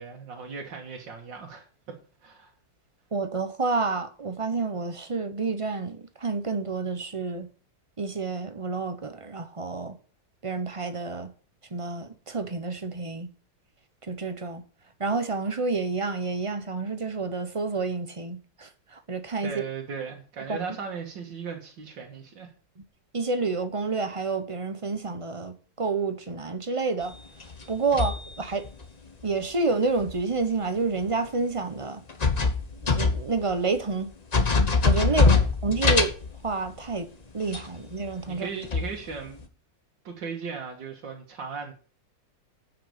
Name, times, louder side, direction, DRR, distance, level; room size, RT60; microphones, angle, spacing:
voice 1, 0.0-1.7 2.2-2.5 19.4-22.5 35.0-35.5 38.3-39.5 40.0-41.7, right 5 dB, 80° right, 2.2 m, -37 dB
voice 2, 3.1-7.5 8.0-10.0 10.4-11.3 11.7-13.3 14.1-14.6 15.0-19.6 20.5-20.6 23.1-27.1 27.7-28.6 29.2-32.0 32.8-34.1 34.8-36.1 36.4-37.1 37.3-38.5, right 4 dB, 25° right, 0.8 m, -29 dB
sound 1, 27.1-28.8 30.0-30.1 31.0-31.1 32.1-33.5 33.8-33.9 34.3-36.8 37.5-37.7 38.0-38.3 38.6-39.4, left 4 dB, 30° left, 0.9 m, -23 dB
9.5 x 6.0 x 6.8 m
omnidirectional pair, 2.0 m